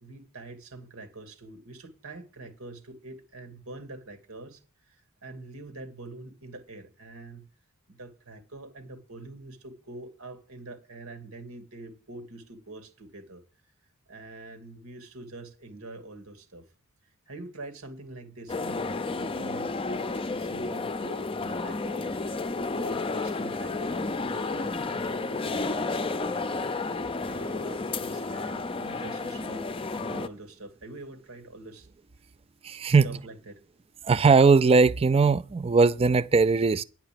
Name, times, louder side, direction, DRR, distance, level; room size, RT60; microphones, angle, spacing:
voice 1, 0.0-4.6 4.9-7.5 7.9-13.4 14.1-16.7 17.3-22.2 22.7-26.5 27.2-31.9 33.0-33.6, right 2 dB, 85° right, 2.4 m, -45 dB
sound 1, 18.5-30.3, left 3 dB, 25° left, 0.6 m, -31 dB
voice 2, 32.6-33.2 34.0-36.8, right 4 dB, 30° right, 0.4 m, -20 dB
10.0 x 5.9 x 7.6 m
head